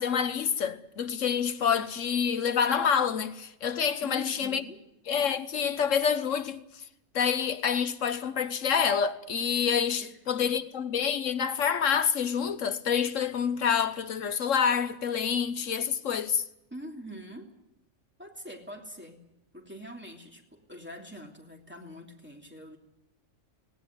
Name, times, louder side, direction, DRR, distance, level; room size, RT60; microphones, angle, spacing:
voice 1, 0.0-4.6 5.1-6.8 7.1-16.4, left 7 dB, 85° left, 1.4 m, -27 dB
voice 2, 4.0-4.8 10.0-10.5 16.7-17.5 18.2-19.3 19.5-22.8, equal, 10° right, 2.9 m, -44 dB
19.0 x 17.5 x 9.6 m
omnidirectional pair, 1.3 m